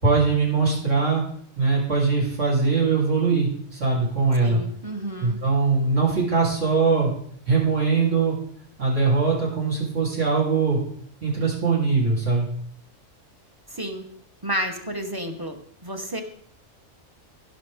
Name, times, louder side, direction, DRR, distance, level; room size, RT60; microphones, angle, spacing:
voice 1, 0.0-1.2 1.6-4.6 5.2-7.1 7.5-8.4 8.8-10.8 11.2-12.5, right 4 dB, 65° right, -5 dB, 3.7 m, -21 dB
voice 2, 4.4-5.4 13.7-14.1 14.4-16.2, right 1 dB, 20° right, 5 dB, 0.9 m, -31 dB
16.5 x 5.8 x 3.6 m, 0.64 s
omnidirectional pair, 1.4 m